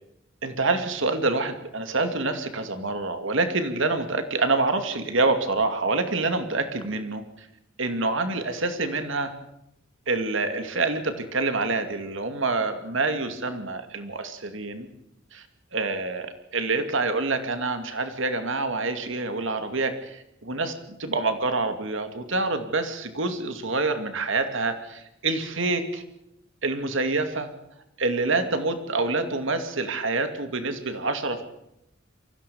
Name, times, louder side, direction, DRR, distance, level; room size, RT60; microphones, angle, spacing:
voice 1, 0.4-7.5 7.8-9.3 10.1-14.9 15.3-15.5 15.7-16.3 16.5-26.0 26.6-27.5 28.0-31.4, right 3 dB, 65° right, 8 dB, 2.5 m, -27 dB
24.5 x 16.0 x 7.1 m, 0.82 s
head